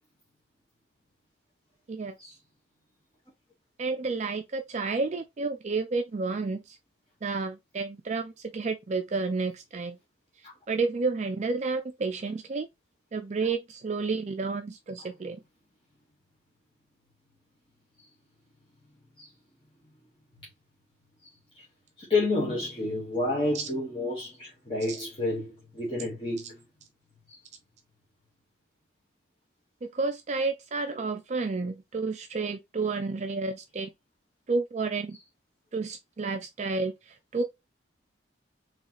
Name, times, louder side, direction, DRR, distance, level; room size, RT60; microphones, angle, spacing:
voice 1, 3.8-6.8 7.2-10.0 10.7-12.7 13.1-15.4 23.5-23.7 24.9-25.0 29.8-33.9 34.5-35.2 35.7-37.4, right 4 dB, 35° right, 0.4 m, -31 dB
voice 2, 22.0-26.6 27.3-27.4, left 2 dB, 25° left, 1.2 m, -30 dB
4.0 x 3.1 x 2.9 m
head